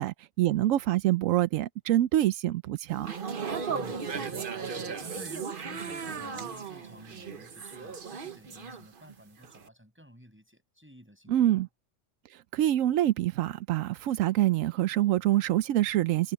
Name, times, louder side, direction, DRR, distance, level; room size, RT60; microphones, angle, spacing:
voice 1, 0.0-3.1 11.3-11.7 12.3-16.3, right 13 dB, 85° right, 1.0 m, -26 dB
sound 1, 2.9-9.1 9.4-9.7, right 5 dB, 45° right, 1.2 m, -36 dB
voice 2, 3.7-11.7, equal, 10° right, 7.6 m, -52 dB
omnidirectional pair, 1.3 m